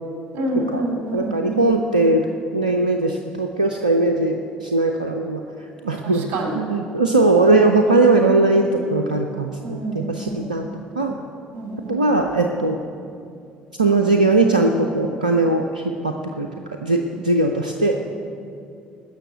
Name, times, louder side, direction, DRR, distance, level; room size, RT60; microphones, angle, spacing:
voice 1, 0.3-1.7 6.0-6.6 9.6-10.4 11.5-12.0, right 2 dB, 55° right, 2 dB, 2.8 m, -27 dB
voice 2, 1.1-2.3 2.5-5.4 5.8-10.7 11.0-11.1 11.9-12.8 13.8-16.5 16.8-18.0, right 2 dB, 85° right, 4 dB, 0.5 m, -19 dB
16.5 x 6.4 x 9.2 m, 2.5 s
figure-of-eight pair, 55°, 4 cm